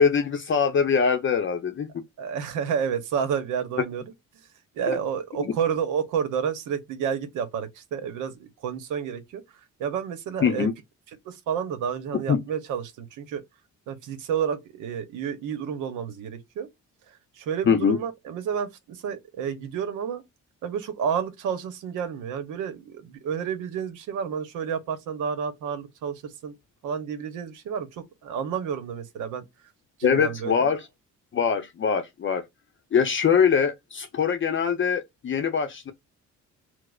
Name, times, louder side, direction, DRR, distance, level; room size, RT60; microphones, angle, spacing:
voice 1, 0.0-1.9 5.4-5.5 10.4-10.7 12.3-12.4 17.7-18.0 30.0-30.8 31.3-32.4 32.9-35.9, left 6 dB, 40° left, 0.6 m, -23 dB
voice 2, 2.2-4.0 4.7-10.7 11.2-13.4 13.9-16.7 17.1-20.2 20.6-26.5 26.8-29.7 30.0-30.7, right 7 dB, 85° right, 0.8 m, -30 dB
4.7 x 2.0 x 2.3 m
cardioid pair, 90°, 30 cm